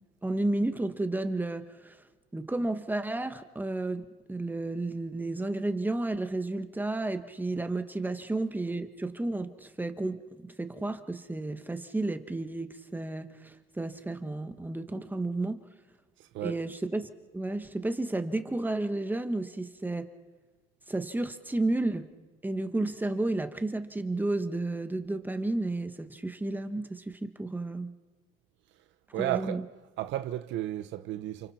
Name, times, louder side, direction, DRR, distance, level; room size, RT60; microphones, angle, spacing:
voice 1, 0.2-2.0 2.3-15.6 16.4-17.1 17.3-20.1 20.9-22.1 22.4-27.9 29.1-29.6, right 2 dB, 10° right, 1.4 m, -32 dB
voice 2, 16.2-16.6 29.1-29.6 30.0-31.5, right 14 dB, 65° right, 1.0 m, -33 dB
30.0 x 28.5 x 4.4 m
cardioid pair, 120°, 21 cm